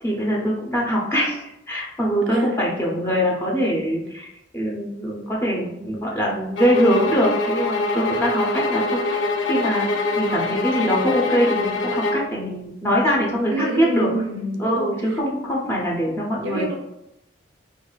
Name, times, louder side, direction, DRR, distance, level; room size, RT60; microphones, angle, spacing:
voice 1, 0.0-4.3 4.5-9.9 10.2-14.1 14.6-16.8, equal, 15° left, -4 dB, 0.5 m, -23 dB
sound 1, 6.6-12.3, left 2 dB, 80° left, 0.5 m, -24 dB
voice 2, 13.5-14.9 15.4-15.5 16.4-16.8, right 1 dB, 80° right, 1 dB, 0.5 m, -28 dB
4.6 x 2.3 x 2.3 m, 0.85 s
head